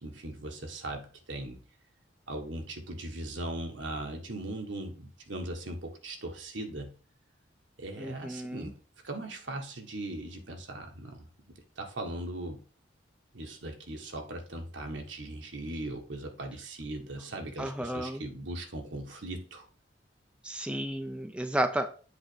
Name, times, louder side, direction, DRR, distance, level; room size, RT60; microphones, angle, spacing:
voice 1, 0.0-1.6 2.3-7.0 7.8-8.8 9.0-11.3 11.8-12.6 13.3-19.7, right 1 dB, 75° right, 3 dB, 1.4 m, -39 dB
voice 2, 8.0-8.7 17.6-18.2 20.4-21.9, right 1 dB, 5° right, 6 dB, 0.5 m, -32 dB
7.8 x 3.0 x 6.2 m, 0.39 s
head